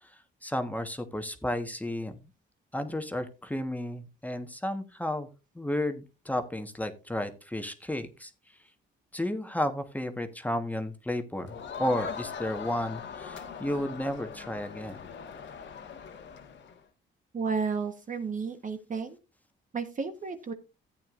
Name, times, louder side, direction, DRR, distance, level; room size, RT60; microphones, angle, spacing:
voice 1, 0.0-2.2 2.7-5.3 5.5-8.3 9.1-15.1, left 1 dB, 10° left, 7 dB, 1.2 m, -33 dB
Crowd, 11.5-16.8, left 6 dB, 65° left, 1.5 m, -41 dB
voice 2, 17.3-19.2 19.7-20.5, right 5 dB, 40° right, 7 dB, 1.2 m, -32 dB
14.0 x 8.8 x 2.5 m, 0.29 s
cardioid pair, 90°, 20 cm